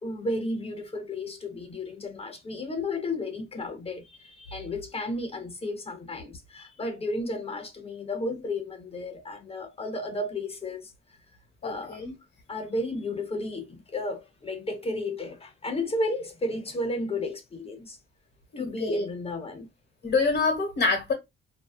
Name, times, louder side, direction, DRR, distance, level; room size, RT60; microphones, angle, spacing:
voice 1, 0.0-10.9 11.6-12.0 12.5-18.0 18.6-19.7, left 2 dB, 30° left, 0.6 m, -33 dB
voice 2, 11.6-12.1 18.5-19.0 20.0-21.1, left 3 dB, 55° left, 1.4 m, -26 dB
2.6 x 2.2 x 2.3 m
cardioid pair, 90°, 20 cm